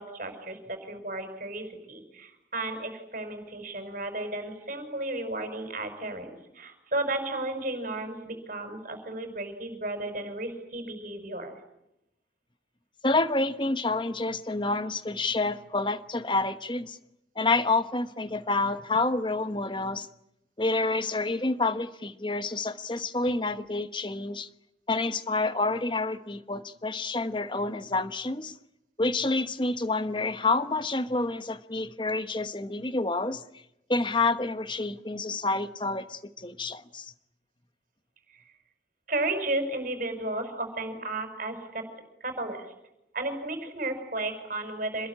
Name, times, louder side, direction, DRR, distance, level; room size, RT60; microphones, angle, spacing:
voice 1, 0.0-11.5 38.3-38.4 39.1-41.8 42.2-42.7 43.1-45.1, right 2 dB, 45° right, 5.6 m, -33 dB
voice 2, 13.0-17.0 17.4-20.1 20.6-24.5 24.9-28.5 29.0-33.4 33.9-37.1, left 3 dB, 25° left, 1.1 m, -28 dB
27.5 x 21.0 x 9.9 m
head